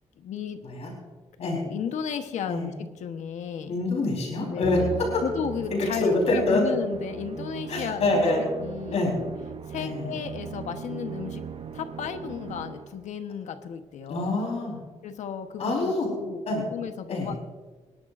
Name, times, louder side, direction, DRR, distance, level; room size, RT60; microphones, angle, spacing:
voice 1, 0.2-0.6 1.4-3.7 4.5-4.9 5.2-8.2 8.6-9.3 9.7-11.4 11.7-14.4 15.0-17.5, left 7 dB, 75° left, 8 dB, 1.1 m, -34 dB
voice 2, 3.7-5.2 5.7-6.6 7.7-8.4 8.9-9.2 9.8-10.1 14.1-14.8 15.6-16.1 16.5-16.6 17.1-17.3, left 2 dB, 60° left, -1 dB, 4.2 m, -26 dB
Musical instrument, 4.6-13.1, right 7 dB, 50° right, 0.7 m, -38 dB
27.0 x 11.5 x 2.6 m, 1.3 s
cardioid pair, 140°, 12 cm